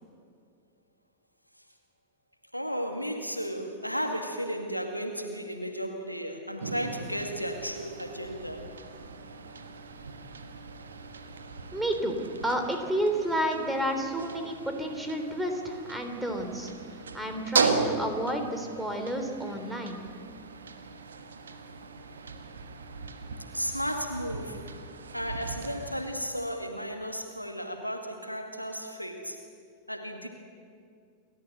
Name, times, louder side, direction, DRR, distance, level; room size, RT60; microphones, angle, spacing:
voice 1, 2.5-8.7 23.5-24.6 25.1-29.4 29.9-30.3, equal, 90° left, 4 dB, 2.2 m, -34 dB
sound 1, 6.6-26.1, right 4 dB, 70° right, 1.6 m, -37 dB
voice 2, 11.7-12.2 12.4-16.7 17.1-20.0, right 1 dB, 5° right, 4 dB, 3.2 m, -30 dB
28.0 x 13.0 x 7.9 m, 2.3 s
figure-of-eight pair, 90°, 0 cm